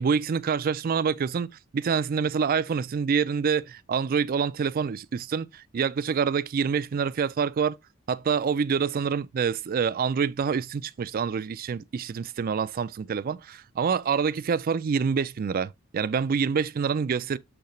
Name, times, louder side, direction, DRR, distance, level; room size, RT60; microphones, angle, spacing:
voice 1, 0.0-7.8 8.1-17.4, right 6 dB, 45° right, 0.4 m, -26 dB
7.9 x 3.8 x 3.1 m
head